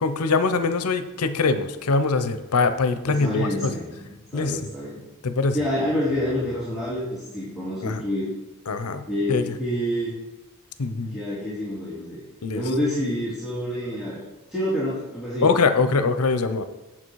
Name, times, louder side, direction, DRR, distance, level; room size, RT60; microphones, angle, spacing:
voice 1, 0.0-3.7 4.3-4.6 5.2-5.6 7.8-8.0 8.7-9.0 9.3-9.4 10.8-11.2 12.4-12.6 15.4-16.6, left 4 dB, 85° left, 11 dB, 0.7 m, -23 dB
voice 2, 3.1-5.0 5.5-8.3 9.1-10.1 11.1-12.2 12.5-14.2 14.5-15.6, left 1 dB, ahead, -10 dB, 2.5 m, -28 dB
8.9 x 7.4 x 4.7 m, 1.1 s
head